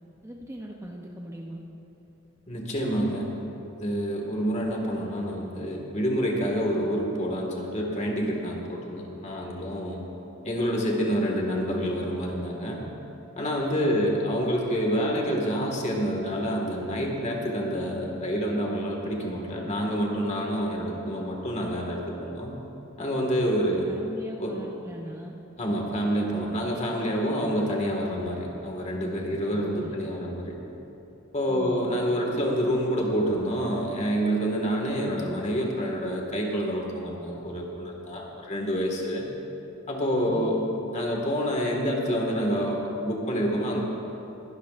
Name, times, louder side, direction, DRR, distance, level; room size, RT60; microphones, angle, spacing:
voice 1, 0.2-1.6 13.7-14.0 23.6-25.3 29.2-30.0 31.5-31.8 40.2-40.6, right 1 dB, 15° right, 0 dB, 0.7 m, -40 dB
voice 2, 2.5-3.3 3.8-10.0 10.4-12.8 13.4-22.6 23.0-23.9 24.4-24.6 25.6-30.6 31.3-39.3 39.9-40.6 40.9-43.8, equal, 35° left, 0 dB, 1.8 m, -27 dB
21.5 x 12.0 x 2.5 m, 2.9 s
head